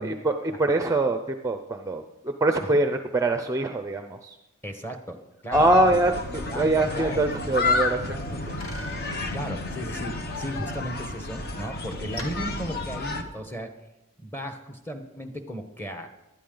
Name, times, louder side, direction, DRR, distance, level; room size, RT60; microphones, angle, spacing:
voice 1, 0.0-4.4 5.5-8.2 8.5-8.6, right 2 dB, 15° right, 6 dB, 0.5 m, -24 dB
voice 2, 4.6-6.0 6.5-6.7 6.9-7.2 7.6-7.7 9.3-13.7 14.2-16.1, equal, 10° left, 5 dB, 1.1 m, -35 dB
sound 1, 5.5-13.2, left 3 dB, 45° left, 1.0 m, -31 dB
Bicycle, 11.6-13.6, left 1 dB, 65° left, 2.2 m, -47 dB
19.0 x 12.0 x 3.9 m, 0.97 s
head